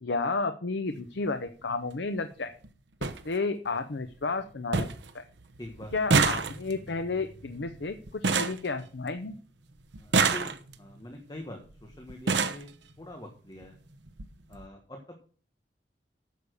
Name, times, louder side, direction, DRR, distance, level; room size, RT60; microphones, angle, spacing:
voice 1, 0.0-2.5 3.0-4.9 5.1-5.2 5.9-9.3, left 3 dB, 80° left, 9 dB, 0.7 m, -32 dB
sound 1, 0.9-1.1 2.3-2.4 2.6-2.7 3.0-3.2 3.7-4.1 4.4-4.5 4.7-5.1 5.4-9.4 9.9-10.9 11.7-11.8 12.1-12.7 13.6-13.7 14.1-14.3 14.5-14.6, right 4 dB, 85° right, 1.0 m, -28 dB
voice 2, 5.6-5.9 10.0-12.7 13.0-13.8 14.5-15.0, left 1 dB, 25° left, 3 dB, 1.4 m, -44 dB
9.4 x 7.0 x 6.5 m, 0.42 s
head